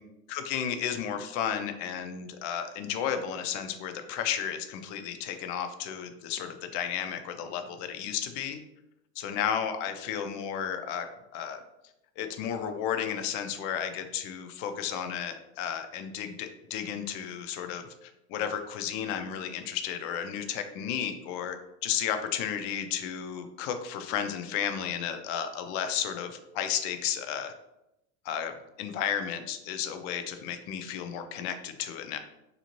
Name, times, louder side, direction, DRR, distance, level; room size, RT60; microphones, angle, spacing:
voice 1, 0.3-8.6 9.2-11.1 11.3-11.6 12.2-21.6 21.8-27.5 28.2-28.5 28.8-32.2, left 8 dB, 60° left, 7 dB, 0.5 m, -33 dB
2.6 x 2.4 x 2.9 m, 0.88 s
supercardioid pair, 105°, 34 cm